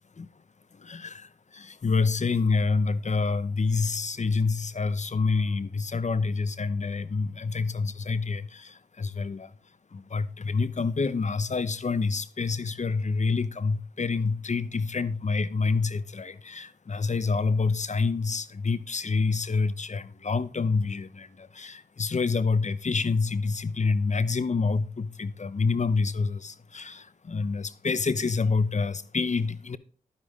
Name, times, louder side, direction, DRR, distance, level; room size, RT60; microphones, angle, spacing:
voice 1, 0.8-9.5 9.9-29.8, left 4 dB, 50° left, 0.9 m, -27 dB
11.5 x 9.7 x 3.7 m
cardioid pair, 40°, 16 cm